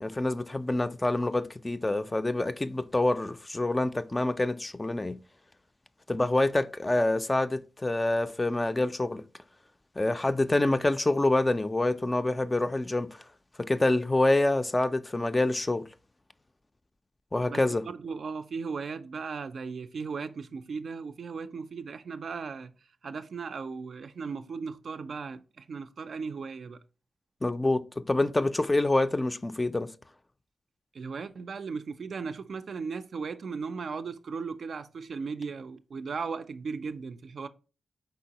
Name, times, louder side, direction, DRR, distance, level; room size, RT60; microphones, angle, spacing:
voice 1, 0.0-5.2 6.1-9.2 10.0-13.2 13.6-15.9 17.3-17.8 27.4-29.9, left 2 dB, 25° left, 0.3 m, -26 dB
voice 2, 17.5-22.7 23.0-26.8 30.9-37.5, right 5 dB, 65° right, 0.3 m, -37 dB
4.5 x 3.8 x 2.8 m
cardioid pair, 65°, 0 cm